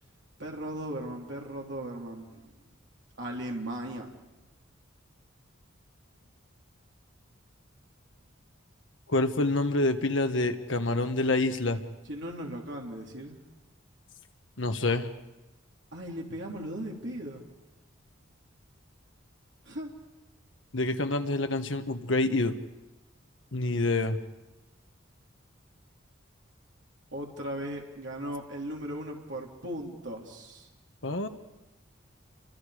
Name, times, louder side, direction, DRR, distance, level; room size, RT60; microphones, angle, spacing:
voice 1, 0.4-2.5 3.2-4.1 12.1-13.4 15.9-17.5 19.6-19.9 27.1-30.7, right 1 dB, 60° right, -1 dB, 3.4 m, -37 dB
voice 2, 9.1-11.8 14.6-15.1 20.7-22.6 23.5-24.2 31.0-31.3, left 2 dB, 70° left, 7 dB, 1.4 m, -27 dB
29.5 x 24.5 x 5.1 m, 1.0 s
head